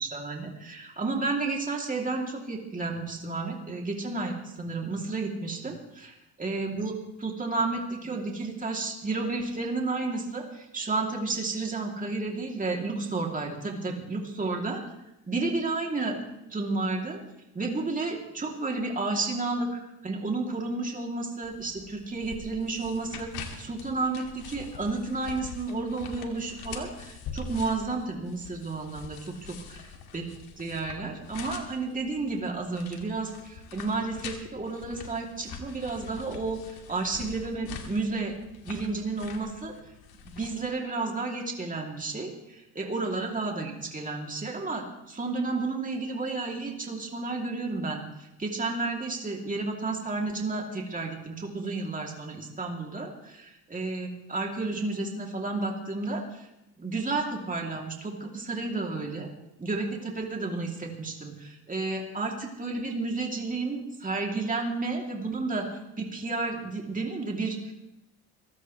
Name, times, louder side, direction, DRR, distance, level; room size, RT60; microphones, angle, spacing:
voice 1, 0.0-6.9 7.2-14.8 15.3-16.2 16.5-17.2 17.5-23.3 23.6-29.6 30.1-30.2 30.6-38.3 38.6-39.8 40.2-48.0 48.4-56.5 56.8-59.3 59.6-65.7 66.0-67.7, right 3 dB, 20° right, 0 dB, 2.9 m, -32 dB
sound 1, 21.4-40.7, left 6 dB, 70° left, 2.3 m, -44 dB
22.5 x 15.0 x 3.2 m, 0.89 s
cardioid pair, 90°, 39 cm